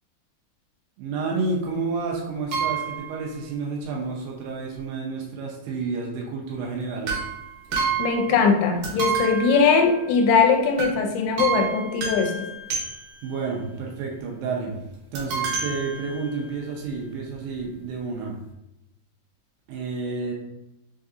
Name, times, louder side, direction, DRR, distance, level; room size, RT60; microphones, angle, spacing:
voice 1, 1.0-7.2 13.2-14.8 15.1-18.4 19.7-20.3, right 4 dB, 85° right, -2 dB, 2.8 m, -30 dB
sound 1, 2.5-3.2 7.0-8.6 8.8-10.3 10.8-11.0 11.4-13.4 15.1-16.6 17.3-17.4 17.6-17.7, right 5 dB, 65° right, 2.3 m, -29 dB
voice 2, 8.0-12.5, left 5 dB, 85° left, 3 dB, 2.6 m, -20 dB
6.3 x 2.7 x 2.4 m, 0.91 s
omnidirectional pair, 4.8 m